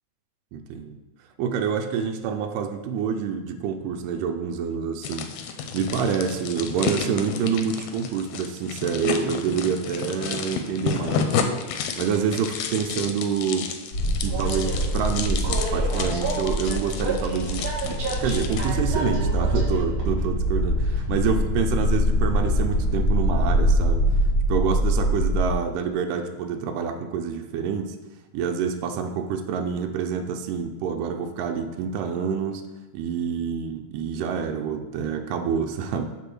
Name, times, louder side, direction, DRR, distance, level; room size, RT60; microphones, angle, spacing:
voice 1, 0.5-1.0 1.4-5.3 5.7-11.4 12.0-13.7 14.2-24.0 24.5-28.0 28.3-32.7 32.9-36.1, right 6 dB, 85° right, 5 dB, 2.2 m, -27 dB
sound 1, 5.0-18.7, left 6 dB, 75° left, 1.8 m, -31 dB
sound 2, 13.9-25.5, equal, 60° left, 0.9 m, -24 dB
Train, 14.3-22.9, right 2 dB, 55° right, 2.6 m, -33 dB
8.2 x 3.3 x 6.0 m, 1.2 s
omnidirectional pair, 3.7 m